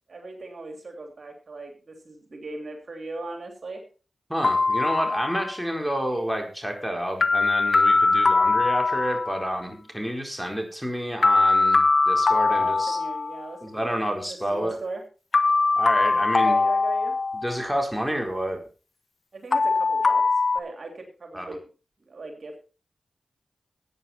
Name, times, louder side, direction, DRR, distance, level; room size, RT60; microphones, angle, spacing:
voice 1, 0.1-3.8 12.4-15.0 16.4-17.2 19.3-20.2 20.5-21.7 22.0-22.6, right 3 dB, 65° right, 4 dB, 2.9 m, -38 dB
voice 2, 4.3-13.0 13.6-14.8 15.8-16.6 17.4-18.6 21.3-21.5, equal, ahead, 2 dB, 4.4 m, -29 dB
sound 1, 4.4-5.6 7.2-9.5 11.2-13.5 15.3-17.7 19.5-20.6, left 3 dB, 60° left, 1.0 m, -21 dB
13.5 x 8.9 x 4.4 m, 0.35 s
cardioid pair, 45°, 0 cm